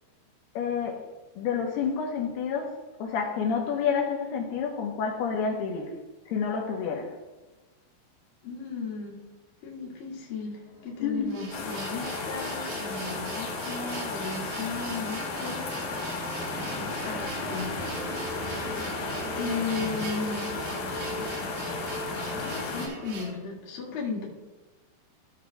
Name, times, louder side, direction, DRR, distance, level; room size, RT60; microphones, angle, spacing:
voice 1, 0.6-1.0 1.4-2.7 3.0-5.9 6.3-7.1 11.0-11.7, left 6 dB, 80° left, 0 dB, 3.0 m, -29 dB
voice 2, 8.4-9.2 9.6-16.3 16.8-17.8 18.3-20.5 22.4-24.3, left 4 dB, 45° left, -5 dB, 2.0 m, -36 dB
sound 1, 10.6-23.2, equal, 65° right, 1.4 m, -41 dB
sound 2, 11.3-23.4, right 4 dB, 90° right, 3.7 m, -43 dB
sound 3, 11.5-22.9, left 3 dB, 60° left, 2.7 m, -34 dB
15.0 x 6.5 x 2.3 m, 1.2 s
omnidirectional pair, 4.7 m